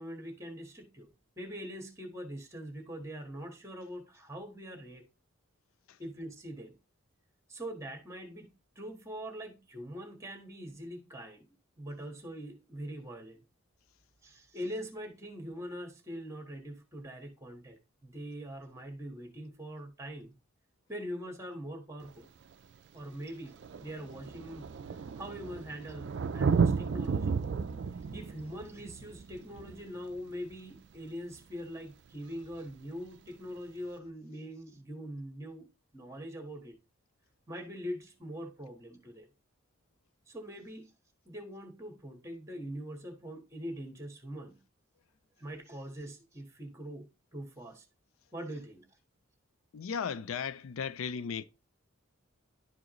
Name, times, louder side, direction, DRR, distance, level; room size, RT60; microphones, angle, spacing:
voice 1, 0.0-5.0 6.0-6.7 7.5-8.5 8.7-11.5 11.8-13.4 14.2-20.3 20.9-22.3 22.9-27.3 28.1-35.7 35.9-36.7 37.5-39.3 40.3-40.9 41.2-44.6 45.4-47.9 48.3-48.8, equal, 15° right, 1.5 m, -43 dB
Thunder, 22.1-22.2 23.1-23.2 23.4-30.8 32.4-32.5, right 5 dB, 55° right, 0.4 m, -33 dB
voice 2, 49.7-51.4, left 6 dB, 70° left, 0.4 m, -35 dB
11.0 x 4.8 x 3.1 m
head